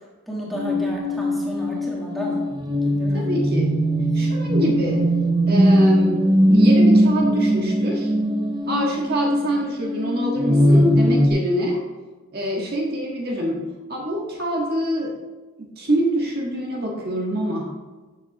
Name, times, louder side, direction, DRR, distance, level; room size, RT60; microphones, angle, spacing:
voice 1, 0.3-2.4 2.8-3.3, right 1 dB, ahead, -5 dB, 1.8 m, -32 dB
sound 1, 0.5-11.3, equal, 20° right, 0.6 m, -19 dB
voice 2, 3.1-3.8 4.1-5.1 5.5-8.1 8.7-11.8 12.3-15.2 15.6-17.7, right 1 dB, 45° right, -2 dB, 1.6 m, -25 dB
13.0 x 7.3 x 3.0 m, 1.3 s
head